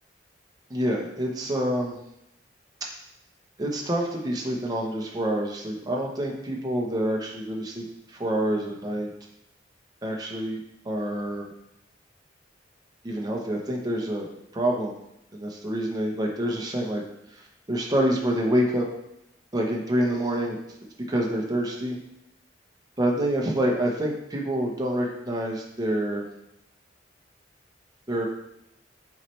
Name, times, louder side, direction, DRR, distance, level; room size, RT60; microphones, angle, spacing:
voice 1, 0.7-2.0 3.6-9.1 10.0-11.5 13.0-14.3 14.5-14.9 15.3-17.0 17.3-18.9 19.5-20.6 21.1-22.0 23.0-26.3 28.1-28.3, right 1 dB, 20° right, -1 dB, 0.9 m, -27 dB
7.1 x 4.4 x 3.2 m, 0.81 s
head